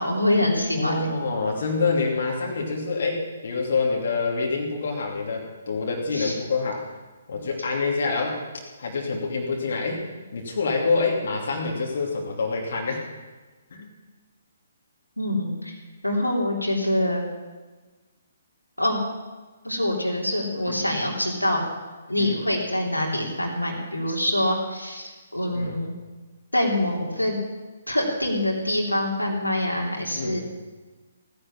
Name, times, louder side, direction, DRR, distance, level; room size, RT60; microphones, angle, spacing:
voice 1, 0.0-1.1 6.1-6.3 15.2-15.8 16.0-17.2 18.8-19.0 19.6-21.6 22.1-26.0 26.5-27.4 27.9-30.4, left 1 dB, 85° left, -1 dB, 3.3 m, -25 dB
voice 2, 0.8-6.9 7.3-8.4 8.8-10.1 10.3-13.0 13.7-13.9 20.7-20.8 22.2-22.3 25.5-25.8 30.1-30.4, left 4 dB, 50° left, -1 dB, 2.9 m, -26 dB
16.5 x 10.5 x 7.3 m, 1.3 s
figure-of-eight pair, 130°, 0 cm